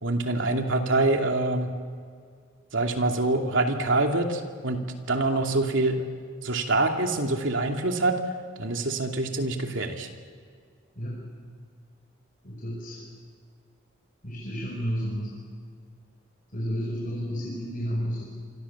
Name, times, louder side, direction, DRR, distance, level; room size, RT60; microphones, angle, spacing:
voice 1, 0.0-1.7 2.7-4.8 5.1-6.1 6.4-8.2 8.6-10.1, right 2 dB, 80° right, 3 dB, 2.8 m, -25 dB
voice 2, 12.4-13.0 14.2-15.3 16.5-18.2, equal, 45° left, -3 dB, 5.7 m, -31 dB
27.5 x 25.5 x 7.3 m, 2.1 s
head